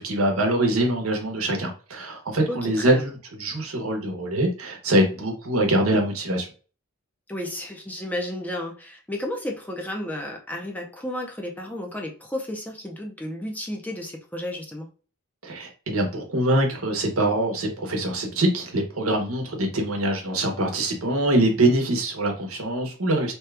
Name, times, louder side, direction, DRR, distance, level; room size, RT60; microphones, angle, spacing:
voice 1, 0.0-6.5 15.4-23.3, right 1 dB, 90° right, 2 dB, 0.9 m, -24 dB
voice 2, 2.5-3.0 7.3-14.9, left 1 dB, 10° left, 1 dB, 0.5 m, -32 dB
2.9 x 2.3 x 3.3 m, 0.37 s
head